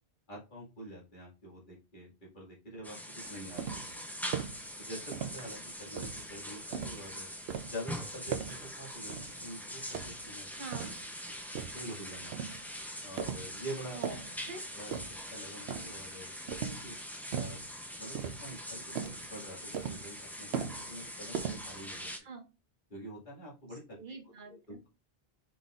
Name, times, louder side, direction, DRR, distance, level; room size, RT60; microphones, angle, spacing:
voice 1, 0.3-4.0 4.8-7.3 7.7-10.5 11.3-11.4 11.7-12.3 13.0-14.0 14.7-15.0 15.3-16.9 17.3-17.6 17.9-22.1 22.9-24.0 24.5-24.9, equal, 50° left, -5 dB, 2.2 m, -46 dB
sound 1, 2.8-22.2, equal, ahead, 0.5 m, -43 dB
sound 2, 3.2-4.0 4.3-4.6 5.1-5.6 6.0-7.1 7.5-7.8 8.3-8.7 9.1-9.5 9.9-11.1 11.6-11.9 12.3-12.7 13.2-13.6 13.9-14.4 14.9-15.3 15.7-16.1 16.5-16.9 17.3-17.7 18.2-18.7 19.0-19.3 19.7-20.2 20.5-21.1 21.3-22.0, right 7 dB, 85° right, 0.9 m, -39 dB
voice 2, 10.5-10.9 13.9-14.6 22.2-22.5 24.0-24.8, right 4 dB, 55° right, 5 dB, 0.8 m, -45 dB
4.8 x 4.0 x 2.4 m, 0.28 s
omnidirectional pair, 1.0 m